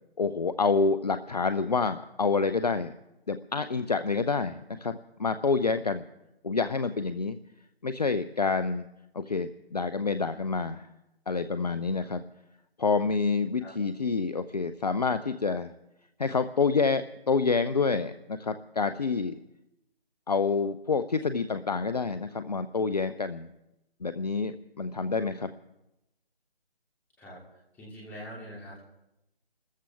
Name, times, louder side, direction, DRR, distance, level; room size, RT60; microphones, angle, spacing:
voice 1, 0.2-2.9 3.3-6.1 6.4-7.4 7.8-8.9 9.1-10.9 11.3-12.2 12.8-15.7 16.2-19.4 20.3-23.5 24.0-25.6, left 4 dB, 40° left, 12 dB, 0.6 m, -28 dB
voice 2, 27.7-28.9, equal, 5° left, -5 dB, 2.7 m, -43 dB
27.5 x 14.0 x 3.5 m, 0.90 s
figure-of-eight pair, 155°, 31 cm